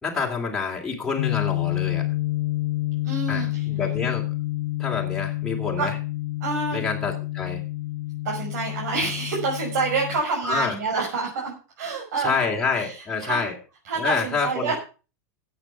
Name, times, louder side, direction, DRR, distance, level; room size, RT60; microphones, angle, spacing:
voice 1, 0.0-2.1 3.3-4.3 4.8-6.0 6.7-7.6 10.4-10.7 12.2-13.5 13.9-14.7, left 5 dB, 5° left, -3 dB, 2.9 m, -27 dB
sound 1, 1.2-10.2, left 17 dB, 55° left, 0.8 m, -28 dB
voice 2, 3.0-3.7 5.8-5.9 6.4-6.8 8.2-12.5 12.8-13.5 13.8-14.7, right 4 dB, 70° right, -2 dB, 5.9 m, -27 dB
13.5 x 8.6 x 5.9 m, 0.34 s
supercardioid pair, 155°, 9 cm